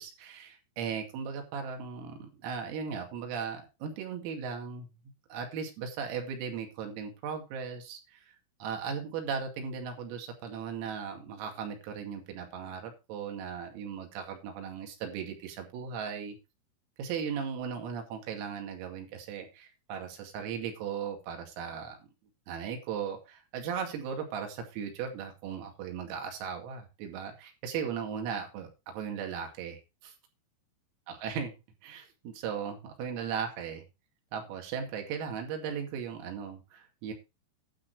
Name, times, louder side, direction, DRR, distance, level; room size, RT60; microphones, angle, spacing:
voice 1, 0.0-4.9 5.3-8.2 8.6-16.4 17.0-22.0 22.5-30.1 31.1-31.5 31.8-33.8 34.3-37.1, right 7 dB, 85° right, 3 dB, 5.0 m, -37 dB
11.5 x 6.8 x 4.7 m, 0.27 s
omnidirectional pair, 5.9 m